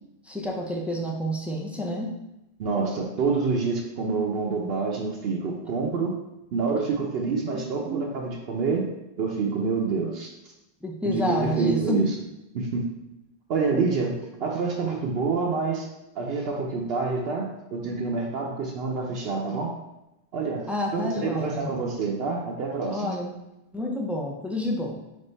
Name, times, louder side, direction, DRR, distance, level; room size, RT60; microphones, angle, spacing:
voice 1, 0.2-2.1 7.5-8.1 10.8-12.1 13.7-13.8 20.7-21.7 22.9-23.3 23.7-25.0, equal, ahead, -1 dB, 0.3 m, -29 dB
voice 2, 2.6-6.2 6.5-8.9 9.2-10.3 11.0-12.1 12.5-12.9 13.5-15.9 16.1-19.7 20.3-20.6 20.9-23.1, right 4 dB, 75° right, 0 dB, 0.8 m, -27 dB
3.7 x 3.2 x 4.0 m, 0.92 s
omnidirectional pair, 1.0 m